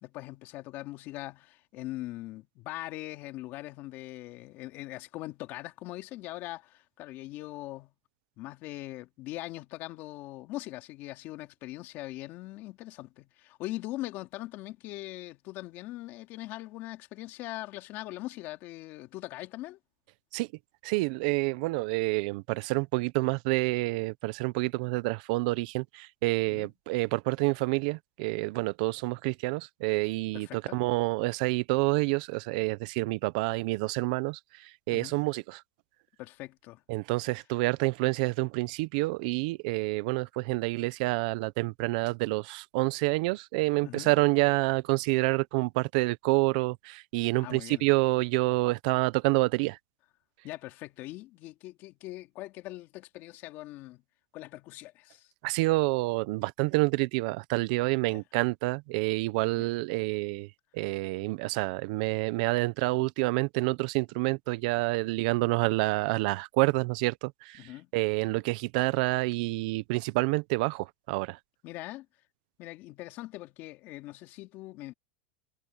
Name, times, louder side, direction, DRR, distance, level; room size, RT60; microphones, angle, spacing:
voice 1, 0.0-7.9 8.4-19.8 26.5-26.7 30.3-30.8 34.9-35.2 36.2-36.8 43.8-44.1 47.4-47.8 50.4-54.0 54.3-55.3 58.0-58.2 59.6-59.7 67.6-67.9 71.6-72.1 72.6-74.9, left 17 dB, 45° left, 2.7 m, -41 dB
voice 2, 20.8-35.6 36.9-49.8 55.4-60.5 60.7-71.4, right 23 dB, 55° right, 0.9 m, -28 dB
supercardioid pair, 145°, 5 cm